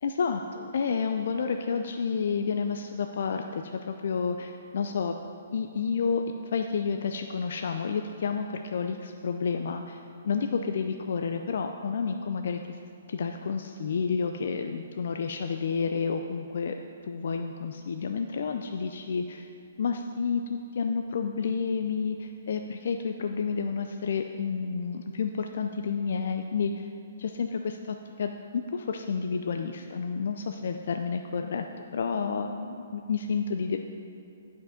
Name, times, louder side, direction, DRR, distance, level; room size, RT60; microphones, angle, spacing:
voice 1, 0.0-5.1 5.5-12.8 13.1-16.8 17.0-19.5 19.8-26.9 27.2-33.8, left 5 dB, 65° left, 5 dB, 0.4 m, -30 dB
9.4 x 5.2 x 5.0 m, 2.6 s
hypercardioid pair, 130°, 0 cm